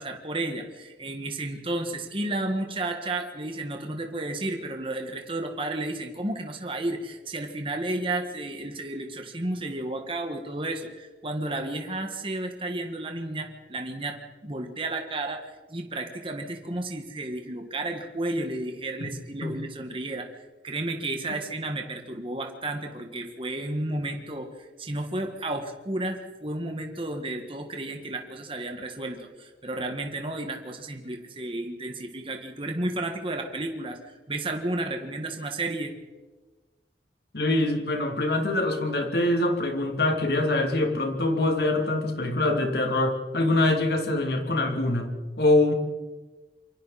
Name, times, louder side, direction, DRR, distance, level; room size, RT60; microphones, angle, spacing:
voice 1, 0.0-20.3 20.6-35.9, right 2 dB, 30° right, 3 dB, 1.8 m, -32 dB
voice 2, 37.3-45.7, left 2 dB, 65° left, 3 dB, 3.0 m, -24 dB
27.5 x 25.0 x 4.3 m, 1.3 s
head